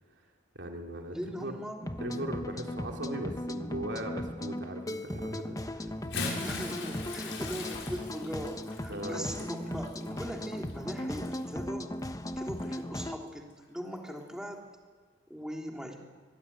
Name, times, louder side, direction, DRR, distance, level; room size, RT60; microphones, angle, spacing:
voice 1, 0.5-1.5 2.0-5.9 8.9-9.5, right 1 dB, 70° right, 2 dB, 3.0 m, -39 dB
voice 2, 1.1-1.9 6.3-11.9 12.4-14.6 15.3-16.0, equal, 5° right, 1 dB, 3.5 m, -39 dB
sound 1, 1.8-13.2, left 1 dB, 20° left, 1.1 m, -38 dB
Bathtub (filling or washing) / Splash splatter, 5.9-11.6 12.5-12.7 14.1-14.2, left 3 dB, 80° left, 6.0 m, -41 dB
23.0 x 22.5 x 9.9 m, 1.4 s
head